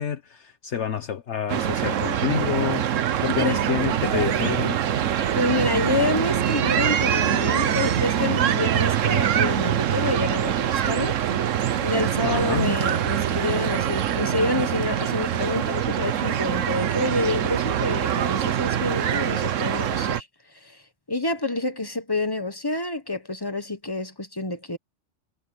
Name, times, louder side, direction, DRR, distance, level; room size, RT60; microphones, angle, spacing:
voice 1, 0.0-2.9 3.2-4.8 12.2-12.8, left 9 dB, 65° left, 1.3 m, -28 dB
sound 1, 1.5-20.2, right 10 dB, 80° right, 1.2 m, -24 dB
voice 2, 3.3-3.7 5.3-11.2 11.4-20.3 20.6-20.8 21.1-24.8, left 2 dB, 20° left, 1.2 m, -28 dB
omnidirectional pair, 1.3 m